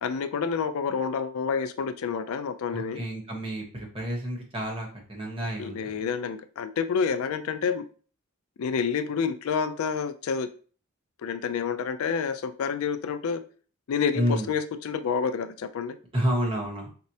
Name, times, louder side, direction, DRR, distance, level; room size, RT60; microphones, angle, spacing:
voice 1, 0.0-3.0 5.6-7.8 8.6-10.5 11.2-13.4 13.9-16.0, left 6 dB, 65° left, 10 dB, 0.3 m, -28 dB
voice 2, 2.7-6.0 14.1-14.5 16.1-16.9, equal, 25° right, 0 dB, 0.9 m, -30 dB
4.3 x 2.0 x 2.7 m, 0.40 s
head